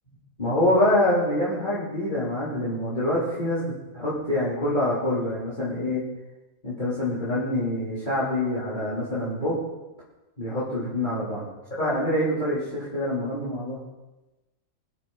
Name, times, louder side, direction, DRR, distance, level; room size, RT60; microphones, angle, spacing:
voice 1, 0.4-6.0 6.6-9.6 10.4-11.4 11.8-13.8, left 1 dB, 35° left, -10 dB, 3.8 m, -25 dB
24.0 x 8.3 x 4.2 m, 1.0 s
omnidirectional pair, 1.4 m